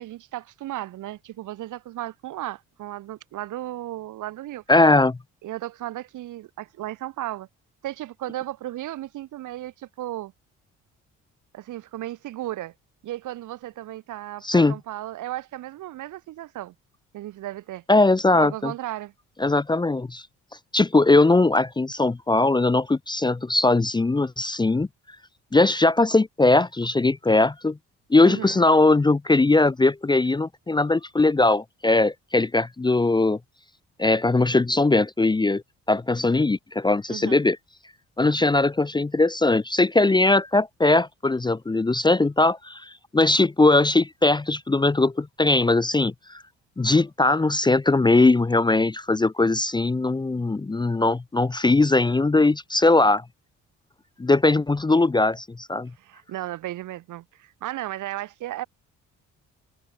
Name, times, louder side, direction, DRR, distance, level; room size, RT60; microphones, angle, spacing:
voice 1, 0.0-4.6 5.4-7.5 7.8-10.3 11.5-12.7 13.0-16.7 17.1-17.8 18.4-19.1 28.2-28.6 37.1-37.4 56.0-58.6, right 14 dB, 80° right, 3.0 m, -35 dB
voice 2, 4.7-5.2 14.4-14.8 17.9-18.7 19.4-20.2 20.7-24.9 25.5-27.8 28.1-33.4 34.0-35.6 35.9-37.6 38.2-46.4 46.8-53.2 54.2-55.9, left 2 dB, 15° left, 0.6 m, -20 dB
supercardioid pair, 70°, 30 cm